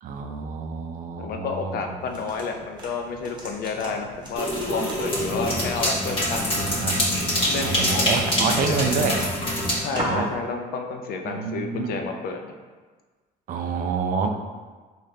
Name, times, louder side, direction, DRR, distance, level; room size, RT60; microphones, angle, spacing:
voice 1, 0.0-1.8 6.6-7.0 7.6-9.2 10.1-10.3 11.3-12.0 13.5-14.3, right 5 dB, 50° right, 5 dB, 0.4 m, -28 dB
voice 2, 1.2-6.5 7.5-8.8 9.8-12.5, left 4 dB, 65° left, 4 dB, 0.5 m, -30 dB
sound 1, 2.0-10.3, equal, 25° right, 1.0 m, -38 dB
sound 2, 4.3-9.8, equal, 30° left, 1.1 m, -25 dB
4.1 x 2.4 x 3.2 m, 1.4 s
cardioid pair, 110°, 17 cm